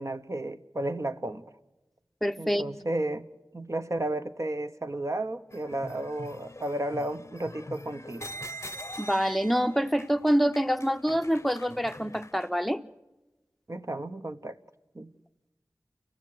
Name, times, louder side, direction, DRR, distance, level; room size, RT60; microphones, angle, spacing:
voice 1, 0.0-1.4 2.4-3.3 3.5-8.3 13.7-14.5 14.9-15.1, right 1 dB, 45° right, 1.0 m, -33 dB
voice 2, 2.2-2.7 9.0-12.8, equal, ahead, 0.8 m, -26 dB
sound 1, 5.5-12.4, equal, 40° left, 0.7 m, -44 dB
29.5 x 14.5 x 7.8 m
wide cardioid pair, 40°, 7 cm